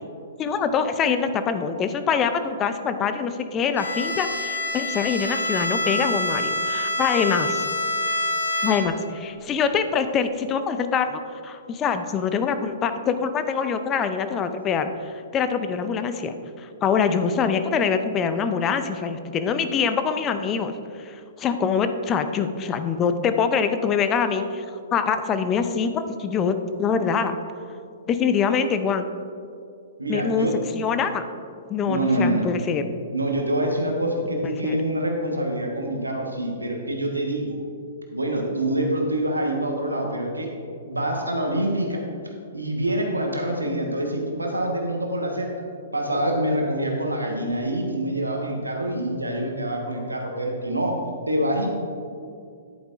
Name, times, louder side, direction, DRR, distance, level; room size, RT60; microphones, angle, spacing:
voice 1, 0.4-7.7 8.6-16.3 16.6-20.7 21.0-24.6 24.9-27.3 28.1-29.1 30.1-30.5 30.7-31.2 31.7-32.8 34.6-34.8, left 6 dB, 25° left, 9 dB, 0.5 m, -24 dB
Bowed string instrument, 3.7-9.2, left 1 dB, 80° left, 0.9 m, -26 dB
voice 2, 30.0-30.6 31.8-32.5 33.1-37.6 38.1-40.5 40.9-42.0 42.5-45.5 45.9-50.9 51.3-51.7, right 1 dB, 90° right, 1 dB, 1.4 m, -25 dB
10.5 x 8.8 x 2.6 m, 2.4 s
figure-of-eight pair, 115°, 0 cm